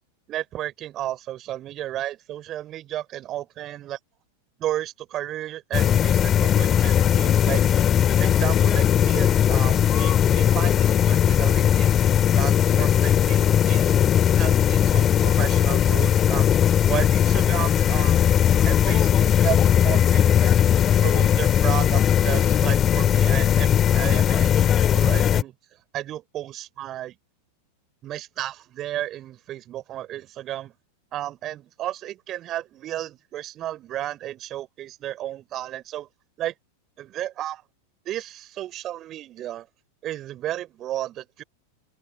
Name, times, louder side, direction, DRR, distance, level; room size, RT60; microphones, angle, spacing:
voice 1, 0.3-4.0 4.6-7.9 8.2-12.0 12.3-14.0 14.4-18.3 18.6-20.7 21.0-25.5 25.9-27.2 28.0-30.7 31.1-36.1 36.4-36.5 37.0-37.6 38.0-39.7 40.0-41.4, right 13 dB, 30° right, 4.0 m, -33 dB
sound 1, 5.7-25.4, left 9 dB, 25° left, 2.1 m, -19 dB
open air
figure-of-eight pair, 90°, 0 cm